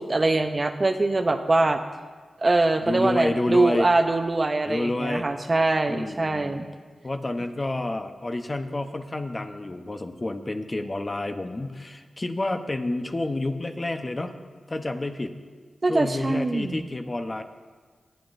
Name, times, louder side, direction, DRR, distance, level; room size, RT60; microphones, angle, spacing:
voice 1, 0.0-1.8 2.4-6.7 15.8-16.9, right 2 dB, 40° right, 7 dB, 0.7 m, -23 dB
voice 2, 2.9-3.9 4.7-5.3 5.9-6.6 7.0-14.4 14.7-15.4 15.9-17.4, left 2 dB, 35° left, 6 dB, 0.9 m, -29 dB
20.5 x 8.7 x 2.6 m, 1.5 s
cardioid pair, 45°, 0 cm